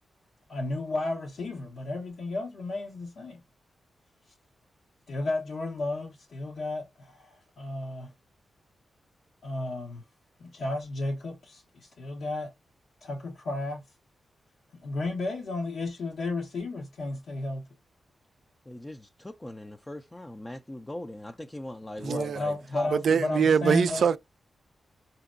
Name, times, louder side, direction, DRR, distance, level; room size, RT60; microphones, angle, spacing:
voice 1, 0.5-3.4 5.1-8.1 9.4-10.0 10.4-12.5 13.0-13.8 14.8-17.7 22.1-24.0, left 2 dB, 80° left, 1.0 m, -33 dB
voice 2, 18.7-22.9 23.3-23.5, left 1 dB, 15° left, 0.4 m, -40 dB
voice 3, 22.0-22.4 22.9-24.2, right 6 dB, 75° right, 0.3 m, -24 dB
4.3 x 2.8 x 2.4 m
cardioid pair, 75°, 0 cm